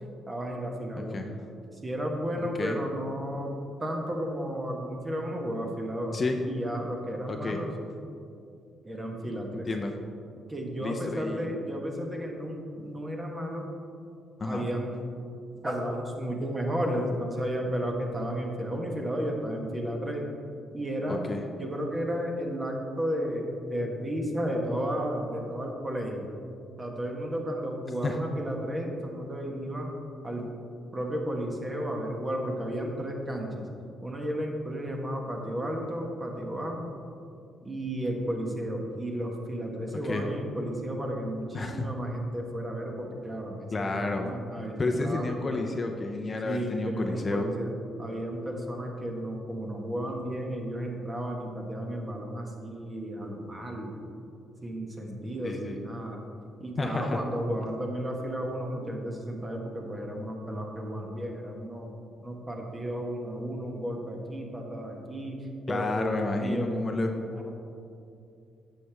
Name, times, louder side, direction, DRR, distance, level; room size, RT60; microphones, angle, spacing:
voice 1, 0.3-1.3 1.8-3.5 3.8-6.2 6.5-7.7 8.8-9.7 10.5-13.7 14.4-14.9 15.6-20.2 20.7-26.3 26.8-29.9 30.2-30.5 30.9-33.6 34.0-36.9 37.6-45.6 46.4-47.7 48.0-54.0 54.6-56.2 56.6-61.9 62.2-65.4 65.7-67.5, equal, 25° right, 1 dB, 1.3 m, -33 dB
voice 2, 1.0-1.3 2.6-2.8 6.1-6.4 7.3-7.6 9.7-9.9 10.8-11.5 14.4-14.7 21.1-21.4 28.0-28.2 40.0-40.3 41.5-41.9 43.7-44.3 44.8-47.5 55.4-55.8 56.8-57.2 65.7-67.1, left 3 dB, 30° left, 3 dB, 0.6 m, -31 dB
9.2 x 6.7 x 3.5 m, 2.5 s
cardioid pair, 90°, 0 cm